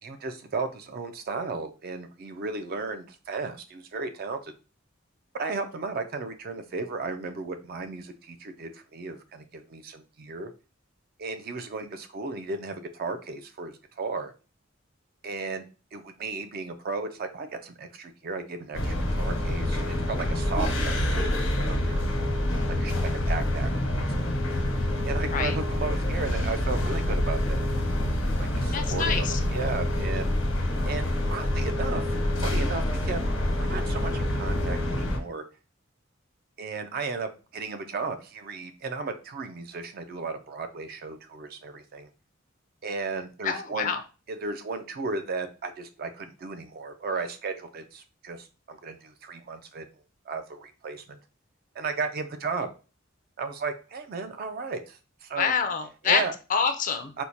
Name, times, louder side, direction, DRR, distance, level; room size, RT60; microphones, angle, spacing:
voice 1, 0.0-4.5 5.3-10.5 11.2-14.3 15.2-15.6 15.9-22.0 22.8-22.9 23.3-24.1 25.0-27.7 28.4-30.3 30.8-31.1 31.3-32.0 32.4-33.2 33.6-35.4 36.6-42.1 42.8-43.9 44.3-49.8 50.3-51.2 51.8-52.7 53.4-55.5 56.0-56.3 57.2-57.3, right 4 dB, 50° right, 8 dB, 0.4 m, -35 dB
sound 1, 18.7-35.2, left 1 dB, 85° left, 1.0 m, -27 dB
voice 2, 28.7-29.4 43.4-44.0 55.4-56.2 56.5-57.1, left 6 dB, 40° left, 7 dB, 0.4 m, -26 dB
4.4 x 2.1 x 2.6 m, 0.33 s
head